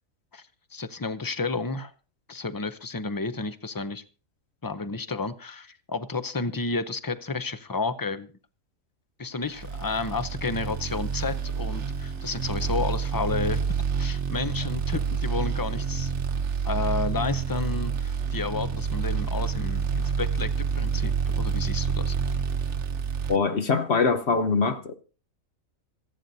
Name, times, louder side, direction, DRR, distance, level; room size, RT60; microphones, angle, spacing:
voice 1, 0.7-1.9 2.3-4.0 4.6-8.3 9.2-13.6 14.0-16.1 16.6-22.1, left 4 dB, 25° left, 0.4 m, -31 dB
sound 1, 9.6-23.4, right 6 dB, 60° right, 1.2 m, -28 dB
voice 2, 23.3-24.9, left 4 dB, 55° left, 1.1 m, -23 dB
26.0 x 9.1 x 2.7 m
omnidirectional pair, 1.4 m